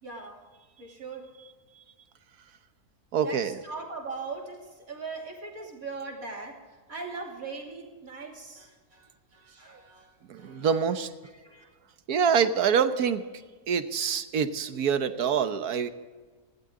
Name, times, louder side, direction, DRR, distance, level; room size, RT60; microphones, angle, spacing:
voice 1, 0.0-0.4 0.8-1.3 3.2-6.6 6.9-10.7 11.2-11.6, right 4 dB, 65° right, 0 dB, 3.2 m, -40 dB
voice 2, 3.1-3.6 10.3-11.1 12.1-13.2 13.7-15.9, right 7 dB, 80° right, 10 dB, 1.5 m, -25 dB
20.0 x 15.5 x 3.8 m, 1.4 s
omnidirectional pair, 1.6 m